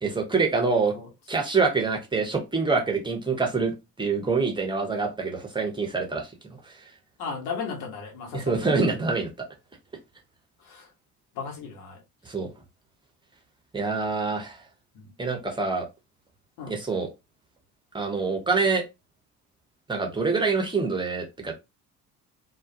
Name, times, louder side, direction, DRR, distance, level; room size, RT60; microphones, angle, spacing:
voice 1, 0.0-1.0 1.3-6.3 6.7-6.8 8.3-9.3 12.2-12.5 13.7-14.6 15.2-15.9 16.7-17.1 17.9-18.9 19.9-21.5, right 4 dB, 10° right, 0.7 m, -26 dB
voice 2, 7.2-8.6 10.6-10.9 11.3-12.0 14.9-15.1 16.6-16.8, left 5 dB, 55° left, 1.0 m, -35 dB
2.2 x 2.1 x 2.7 m
figure-of-eight pair, 50°, 46 cm